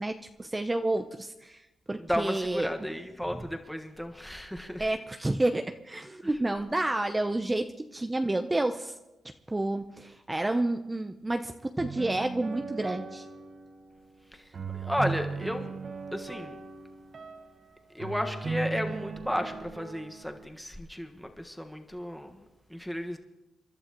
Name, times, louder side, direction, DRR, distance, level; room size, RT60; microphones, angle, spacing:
voice 1, 0.0-1.6 1.9-2.7 4.8-8.9 9.5-13.2, right 2 dB, 20° right, 7 dB, 0.6 m, -30 dB
voice 2, 1.9-4.9 6.2-6.3 14.3-15.7 16.1-16.6 17.9-22.4 22.7-23.2, equal, 5° left, 4 dB, 1.4 m, -34 dB
sound 1, 11.8-13.8 14.5-17.5 18.0-20.5, right 4 dB, 50° right, 1.0 m, -37 dB
28.0 x 11.5 x 3.0 m, 1.0 s
cardioid pair, 70°, 0 cm